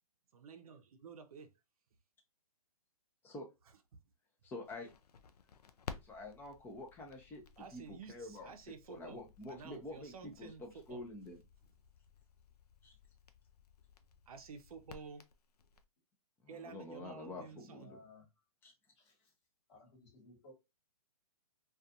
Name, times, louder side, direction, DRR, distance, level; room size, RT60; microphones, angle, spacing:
voice 1, 0.3-1.6 7.6-11.0 14.3-15.3 16.5-17.9, right 5 dB, 70° right, 0.6 m, -52 dB
voice 2, 4.4-4.9 6.0-7.4 7.7-8.5 8.9-11.4 12.8-12.9 16.4-18.0 18.6-18.7, left 2 dB, 10° left, 0.5 m, -47 dB
Crackle, 4.6-15.8, left 6 dB, 85° left, 0.4 m, -55 dB
voice 3, 17.4-18.3 18.9-19.3 19.7-20.5, left 2 dB, 50° left, 1.2 m, -60 dB
2.4 x 2.3 x 2.6 m
hypercardioid pair, 135°, 19 cm